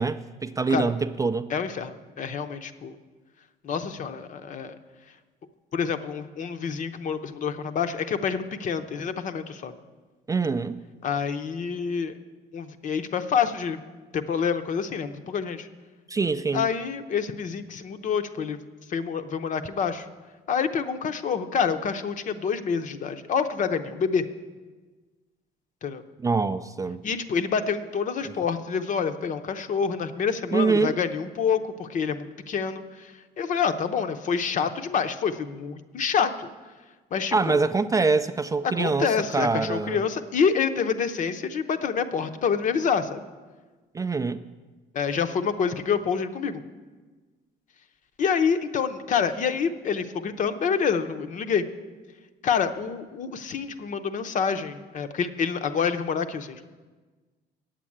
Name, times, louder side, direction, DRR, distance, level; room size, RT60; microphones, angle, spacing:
voice 1, 0.0-1.5 10.3-10.8 16.1-16.7 26.2-27.0 30.5-31.0 37.3-40.0 43.9-44.4, right 4 dB, 20° right, 0.3 m, -25 dB
voice 2, 1.5-2.9 3.6-4.8 5.7-9.7 11.0-12.1 12.5-13.8 14.1-15.7 16.5-18.6 18.9-20.1 20.5-24.2 25.8-26.0 27.0-36.5 37.1-37.6 38.8-43.2 44.9-46.6 48.2-51.6 52.4-56.6, left 6 dB, 50° left, 0.7 m, -27 dB
8.8 x 7.5 x 8.5 m
cardioid pair, 110°, 17 cm